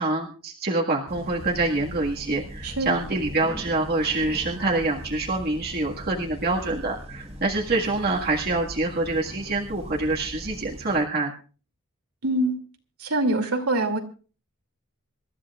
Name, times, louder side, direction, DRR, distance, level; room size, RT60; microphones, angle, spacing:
voice 1, 0.0-11.3, right 2 dB, 45° right, -1 dB, 1.8 m, -26 dB
sound 1, 1.1-11.1, equal, 30° right, 1.6 m, -40 dB
voice 2, 12.2-12.6 13.0-14.0, right 2 dB, 80° right, 4 dB, 2.7 m, -24 dB
27.0 x 13.5 x 2.4 m, 0.38 s
head